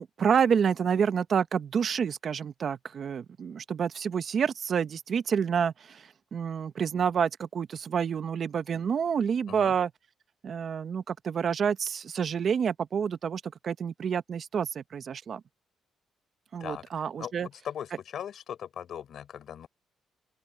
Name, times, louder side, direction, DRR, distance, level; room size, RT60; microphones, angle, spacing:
voice 1, 0.0-9.9 10.4-15.4 16.5-17.5, right 7 dB, 55° right, 1.0 m, -28 dB
voice 2, 16.6-19.7, left 9 dB, 65° left, 3.9 m, -39 dB
open air
cardioid pair, 90°, 0 cm